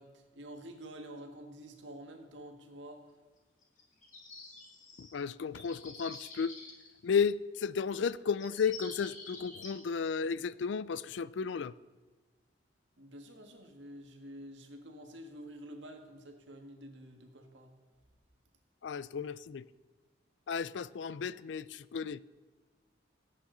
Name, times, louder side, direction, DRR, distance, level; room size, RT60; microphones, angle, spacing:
voice 1, 0.0-3.0 13.0-17.7, right 1 dB, 80° right, 1.7 m, -49 dB
sound 1, 3.6-5.1 5.5-6.9 8.0-8.1 8.4-9.8, left 3 dB, 40° left, 2.2 m, -48 dB
voice 2, 5.0-6.5 7.0-11.7 18.8-19.6 20.5-22.2, left 6 dB, 75° left, 0.4 m, -33 dB
16.5 x 8.7 x 3.9 m
head